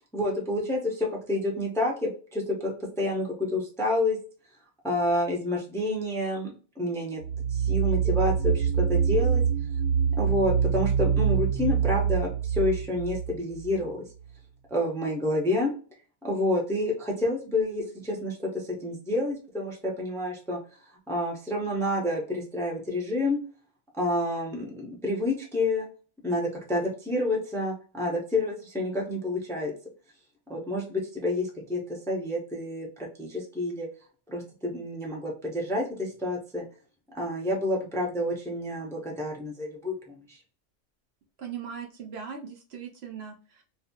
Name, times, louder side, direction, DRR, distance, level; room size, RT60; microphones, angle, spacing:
voice 1, 0.1-4.2 4.8-7.2 7.5-9.4 10.1-14.0 14.7-15.7 16.2-20.6 21.1-23.4 24.0-25.9 26.2-29.7 30.5-33.9 34.3-36.6 37.1-40.4, left 1 dB, 5° left, -2 dB, 0.5 m, -29 dB
sound 1, 7.2-13.8, right 7 dB, 85° right, 1.0 m, -25 dB
voice 2, 41.4-43.6, right 7 dB, 65° right, 1 dB, 0.8 m, -39 dB
2.6 x 2.4 x 2.7 m, 0.39 s
omnidirectional pair, 1.2 m